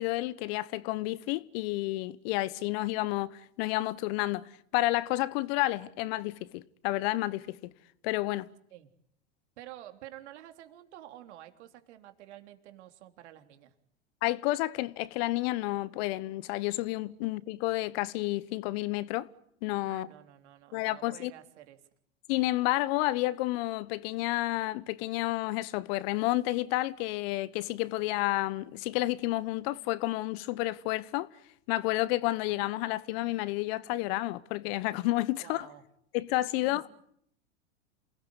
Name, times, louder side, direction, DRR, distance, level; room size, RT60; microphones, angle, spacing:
voice 1, 0.0-7.7 8.0-8.5 14.2-19.3 19.6-20.1 20.7-21.3 22.3-31.3 31.7-35.7 36.1-36.8, left 18 dB, 55° left, 1.2 m, -30 dB
voice 2, 9.6-13.7 19.9-21.8 35.4-35.8 36.6-36.9, right 13 dB, 65° right, 3.4 m, -50 dB
28.0 x 19.0 x 9.8 m
hypercardioid pair, 100°, 36 cm